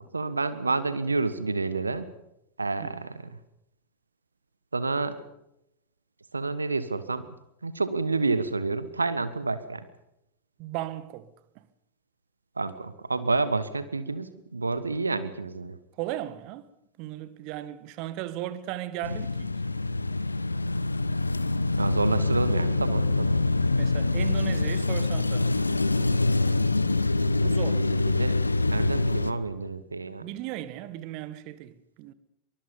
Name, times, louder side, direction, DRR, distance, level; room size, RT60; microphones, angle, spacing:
voice 1, 0.0-2.0 2.6-3.4 4.7-5.2 6.3-7.2 7.6-9.8 12.6-15.8 21.8-23.4 27.6-28.4 28.7-30.2, right 3 dB, 80° right, 1.4 m, -29 dB
voice 2, 10.6-11.3 16.0-16.6 17.0-19.5 23.8-25.5 27.4-27.8 30.2-32.1, right 14 dB, 45° right, 1.6 m, -36 dB
sound 1, 19.0-29.3, left 2 dB, 80° left, 0.9 m, -25 dB
23.5 x 23.0 x 5.4 m
figure-of-eight pair, 90°, 0 cm